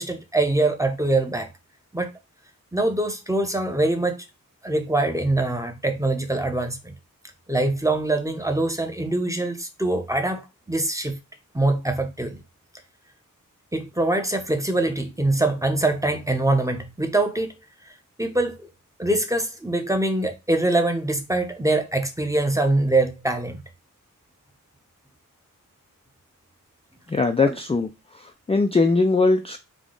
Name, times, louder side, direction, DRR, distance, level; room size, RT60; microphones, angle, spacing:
voice 1, 0.0-1.5 1.9-2.1 2.7-4.2 4.6-6.9 7.5-10.4 10.7-11.2 11.5-12.4 13.7-17.5 18.2-18.7 19.0-23.6 27.5-27.6, right 2 dB, 10° right, 0.8 m, -23 dB
voice 2, 27.1-27.9 28.5-29.6, left 3 dB, 20° left, 0.4 m, -20 dB
3.6 x 2.3 x 3.8 m
wide cardioid pair, 65°, 33 cm